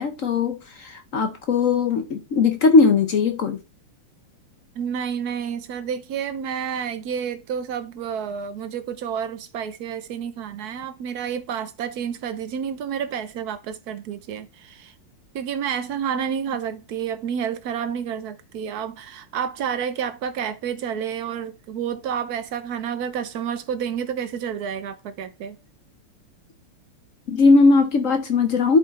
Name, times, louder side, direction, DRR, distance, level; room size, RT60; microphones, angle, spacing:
voice 1, 0.0-3.6 27.3-28.8, left 4 dB, 65° left, 0.8 m, -19 dB
voice 2, 4.8-14.9 15.3-25.6, right 8 dB, 65° right, 1.0 m, -29 dB
10.5 x 5.1 x 4.1 m
omnidirectional pair, 2.4 m